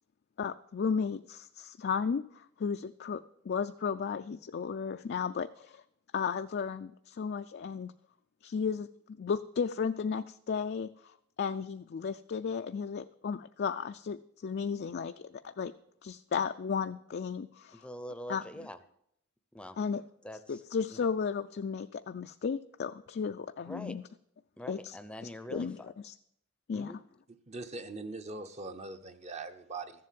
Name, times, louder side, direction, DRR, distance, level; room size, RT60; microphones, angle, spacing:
voice 1, 0.4-5.8 6.1-7.9 8.4-15.1 15.4-15.7 16.0-17.9 18.3-18.4 19.8-20.0 20.5-24.0 24.7-25.0 25.5-25.8 26.0-26.1 26.7-26.9, left 6 dB, 50° left, 0.4 m, -34 dB
voice 2, 17.7-18.8 19.5-19.8 20.2-20.6 20.9-21.1 23.6-24.0 24.6-25.9 26.7-27.0, equal, 5° left, 0.6 m, -44 dB
voice 3, 27.5-29.9, right 3 dB, 35° right, 0.8 m, -41 dB
14.0 x 7.7 x 7.5 m
head